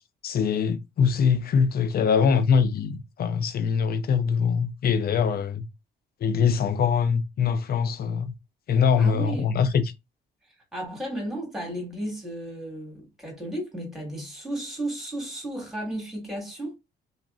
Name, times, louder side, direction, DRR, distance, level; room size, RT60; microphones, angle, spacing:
voice 1, 0.2-5.7 6.2-8.3 8.7-9.8, left 6 dB, 50° left, 0.4 m, -23 dB
voice 2, 9.0-9.5 10.7-16.8, right 1 dB, ahead, 1.8 m, -34 dB
2.8 x 2.5 x 2.4 m
cardioid pair, 90°, 20 cm